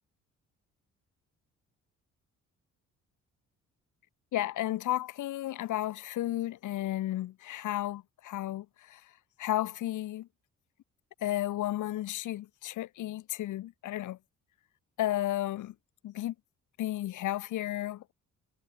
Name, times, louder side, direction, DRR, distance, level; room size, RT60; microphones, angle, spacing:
voice 1, 4.3-9.1 9.4-10.3 11.2-14.2 15.0-15.7 16.0-16.3 16.8-18.1, left 14 dB, 80° left, 2.0 m, -33 dB
cardioid pair, 90°, 30 cm